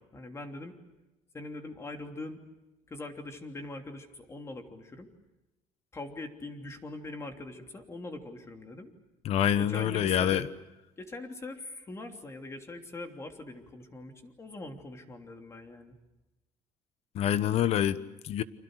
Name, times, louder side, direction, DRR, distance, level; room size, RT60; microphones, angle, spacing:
voice 1, 0.1-0.7 1.3-2.4 2.9-5.1 5.9-8.9 9.6-10.4 11.0-15.9, left 2 dB, 20° left, 4 dB, 3.1 m, -42 dB
voice 2, 9.2-10.4 17.1-18.4, left 10 dB, 55° left, 14 dB, 1.2 m, -26 dB
29.5 x 25.5 x 6.5 m, 1.0 s
cardioid pair, 140°, 12 cm